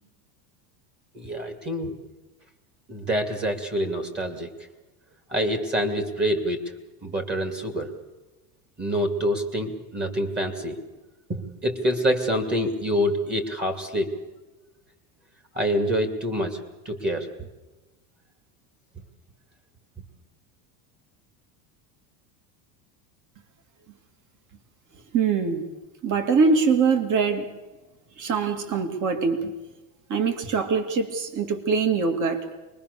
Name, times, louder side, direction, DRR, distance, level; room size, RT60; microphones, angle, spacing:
voice 1, 1.1-1.9 2.9-4.5 5.3-6.6 7.0-7.9 8.8-10.8 11.3-14.1 15.5-16.6 16.8-17.3, equal, 20° right, 6 dB, 2.7 m, -26 dB
voice 2, 25.1-25.6 26.0-27.4 28.2-29.5 30.1-32.5, right 5 dB, 40° right, 7 dB, 2.9 m, -23 dB
28.0 x 21.5 x 7.0 m, 1.1 s
supercardioid pair, 140°, 49 cm